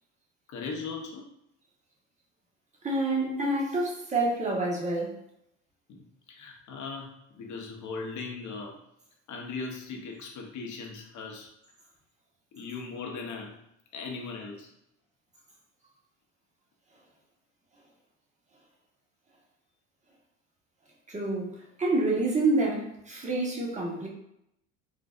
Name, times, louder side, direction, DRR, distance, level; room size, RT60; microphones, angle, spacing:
voice 1, 0.5-1.3 3.2-3.5 5.9-8.8 9.3-11.5 12.5-13.6 13.9-14.7, left 4 dB, 45° left, 0.9 m, -39 dB
voice 2, 2.8-5.2 21.1-24.1, right 2 dB, 15° right, 1.1 m, -28 dB
3.8 x 2.4 x 2.4 m
hypercardioid pair, 75°, 42 cm